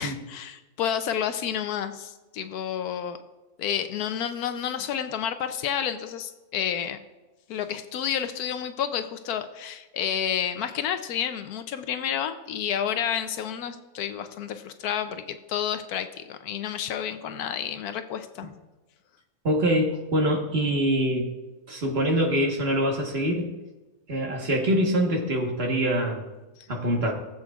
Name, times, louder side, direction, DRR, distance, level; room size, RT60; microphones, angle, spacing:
voice 1, 0.0-3.2 3.6-7.0 7.5-18.5, left 9 dB, 85° left, 9 dB, 1.1 m, -30 dB
voice 2, 19.4-21.4 21.7-23.5 24.1-26.2 26.7-27.1, equal, 45° right, 1 dB, 1.6 m, -24 dB
17.5 x 7.6 x 2.4 m, 1.1 s
omnidirectional pair, 1.6 m